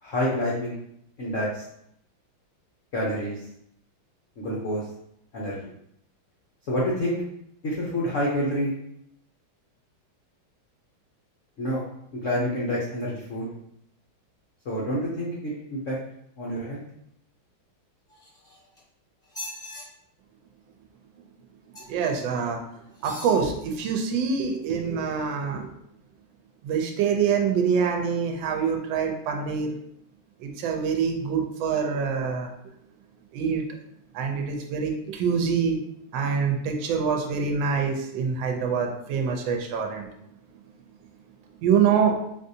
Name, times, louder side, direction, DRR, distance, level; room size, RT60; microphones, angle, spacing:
voice 1, 0.0-0.7 1.2-1.6 2.9-3.4 4.4-4.8 5.3-5.7 6.7-7.2 7.6-8.7 11.6-11.8 12.1-13.5 14.7-16.0 16.4-16.8, equal, 85° left, -5 dB, 0.6 m, -28 dB
sound 1, 18.1-18.8 19.2-19.8 21.7-22.1 22.9-23.4 24.0-24.1, left 1 dB, 5° left, 0.6 m, -40 dB
voice 2, 21.9-22.6 23.0-25.7 26.6-29.7 30.4-32.5 33.3-33.6 34.1-35.8 36.1-40.1 41.6-42.2, right 6 dB, 75° right, 2 dB, 1.3 m, -25 dB
3.9 x 2.6 x 2.6 m, 0.75 s
omnidirectional pair, 2.3 m